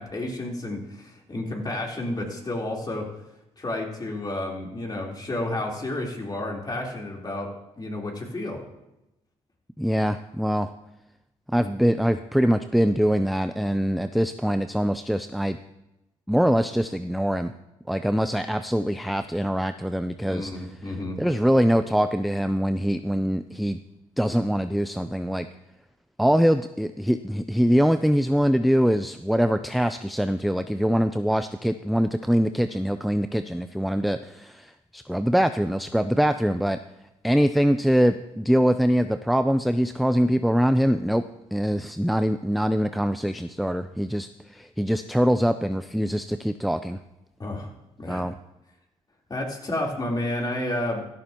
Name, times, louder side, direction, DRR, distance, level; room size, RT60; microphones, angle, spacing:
voice 1, 0.0-3.1 3.6-7.5 7.8-8.6 20.3-21.2 47.4-47.7 48.0-48.2 49.3-51.1, left 1 dB, 30° left, -1 dB, 3.7 m, -31 dB
voice 2, 9.8-10.7 11.5-15.6 16.3-17.5 17.9-20.5 21.2-23.8 24.2-25.5 26.2-36.8 37.2-41.2 41.5-47.0 48.1-48.3, equal, ahead, 10 dB, 0.5 m, -23 dB
16.0 x 12.5 x 3.0 m, 0.93 s
supercardioid pair, 65°, 13 cm